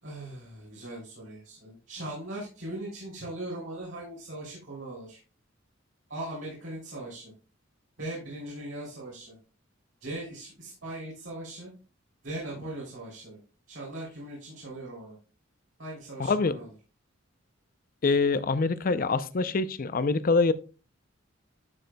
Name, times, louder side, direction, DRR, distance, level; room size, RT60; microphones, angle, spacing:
voice 1, 0.0-5.2 6.1-7.3 8.0-9.4 10.0-11.7 12.2-13.4 13.7-15.2 15.8-16.7, right 1 dB, 70° right, 3.1 m, -39 dB
voice 2, 16.2-16.6 18.0-20.5, left 4 dB, 45° left, 0.5 m, -25 dB
11.0 x 6.6 x 2.2 m
head